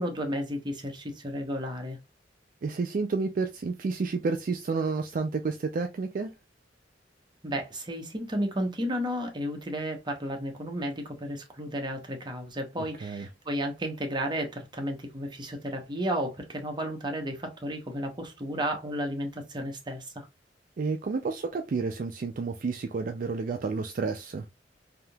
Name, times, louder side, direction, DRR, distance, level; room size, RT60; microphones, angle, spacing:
voice 1, 0.0-2.0 7.4-20.3, equal, 25° right, 0.9 m, -33 dB
voice 2, 2.6-6.3 13.0-13.3 20.8-24.4, right 4 dB, 50° right, 0.4 m, -30 dB
3.4 x 2.7 x 2.2 m
head